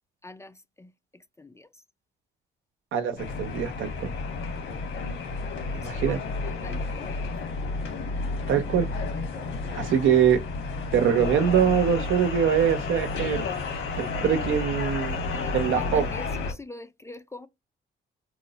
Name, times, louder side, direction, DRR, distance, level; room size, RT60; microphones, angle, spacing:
voice 1, 0.2-0.9 1.4-1.7 4.7-4.8 5.9-7.5 9.6-9.8 15.1-17.5, left 2 dB, 15° left, 0.4 m, -45 dB
voice 2, 2.9-4.1 5.7-6.3 8.5-8.9 9.8-10.4 10.9-13.5 14.0-15.2 15.5-16.1, right 8 dB, 80° right, 0.7 m, -23 dB
sound 1, 3.2-16.5, left 3 dB, 75° left, 1.3 m, -31 dB
3.0 x 2.0 x 3.8 m
cardioid pair, 90°, 20 cm